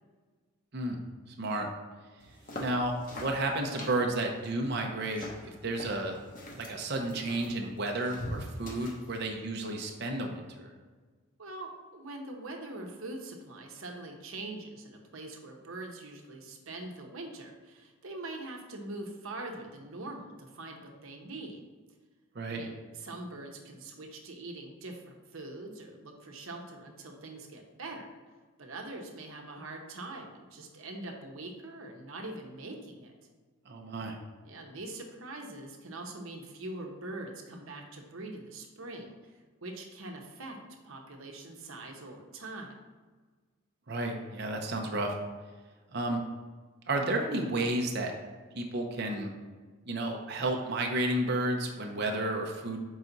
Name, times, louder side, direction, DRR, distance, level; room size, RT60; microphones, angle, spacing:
voice 1, 1.4-1.7 2.6-5.3 5.6-6.2 6.6-10.7 22.3-22.6 33.7-34.2 43.9-45.1 45.9-46.2 46.9-48.1 48.6-49.3 49.9-52.9, right 2 dB, 50° right, 2 dB, 0.7 m, -32 dB
sound 1, 2.2-9.2, left 1 dB, 40° left, 0.9 m, -44 dB
voice 2, 11.4-21.6 22.5-28.2 28.6-33.1 34.4-39.3 39.6-40.6 40.8-42.8, right 2 dB, 70° right, 2 dB, 0.9 m, -43 dB
5.9 x 4.8 x 3.9 m, 1.4 s
head